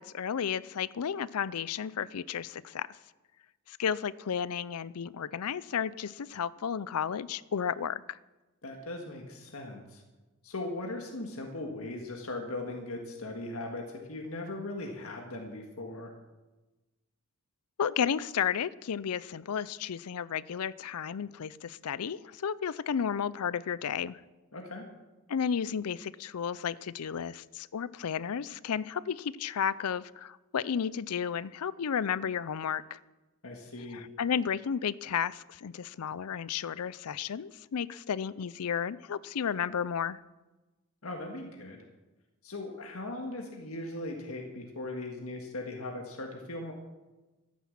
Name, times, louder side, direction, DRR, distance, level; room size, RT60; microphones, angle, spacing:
voice 1, 0.0-2.9 3.7-8.2 17.8-24.2 25.3-33.0 33.9-40.2, left 7 dB, 90° left, 19 dB, 0.5 m, -33 dB
voice 2, 8.6-10.0 10.4-16.1 24.5-24.8 33.4-34.0 41.0-41.8 42.4-46.7, left 2 dB, 75° left, 2 dB, 1.8 m, -39 dB
13.5 x 10.0 x 7.4 m, 1.1 s
head